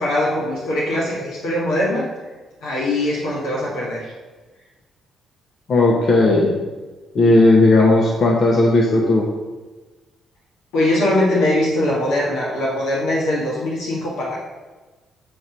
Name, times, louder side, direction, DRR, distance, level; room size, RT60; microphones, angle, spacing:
voice 1, 0.0-2.0 2.6-4.1 10.7-14.4, left 1 dB, 90° left, -6 dB, 1.6 m, -21 dB
voice 2, 5.7-6.5 7.1-9.3, left 2 dB, 55° left, -1 dB, 1.0 m, -15 dB
7.8 x 2.9 x 5.2 m, 1.3 s
cardioid pair, 90°, 0 cm